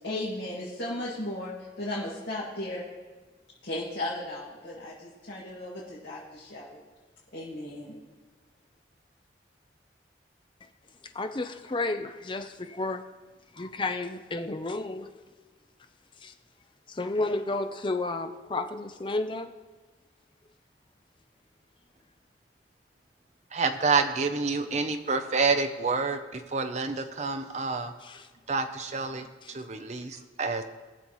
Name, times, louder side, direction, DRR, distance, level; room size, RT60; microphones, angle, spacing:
voice 1, 0.0-2.8 3.6-6.8 7.3-8.0, left 1 dB, 80° left, -7 dB, 2.1 m, -35 dB
voice 2, 11.1-13.0 13.5-15.1 16.2-16.3 16.9-19.5 28.0-28.3 29.4-29.5, left 2 dB, 25° left, 8 dB, 0.5 m, -32 dB
voice 3, 23.5-27.9 28.5-30.6, right 4 dB, 40° right, 7 dB, 0.6 m, -28 dB
19.5 x 7.0 x 3.1 m, 1.3 s
head